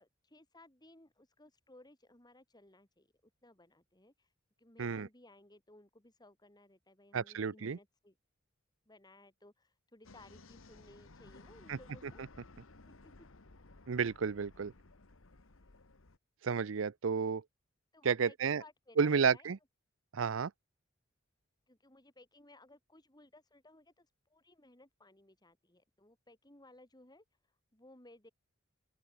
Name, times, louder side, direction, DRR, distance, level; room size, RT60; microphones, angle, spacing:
voice 1, 0.0-4.3 4.6-8.1 8.9-12.2 12.8-12.9 17.9-19.5 21.7-27.2 27.7-28.3, left 2 dB, 20° left, 3.9 m, -60 dB
voice 2, 7.1-7.8 11.7-11.8 13.9-14.7 16.4-17.4 18.0-18.6 19.0-19.6 20.1-20.5, right 6 dB, 70° right, 0.6 m, -31 dB
sound 1, 10.0-16.2, left 2 dB, 80° left, 1.5 m, -57 dB
open air
head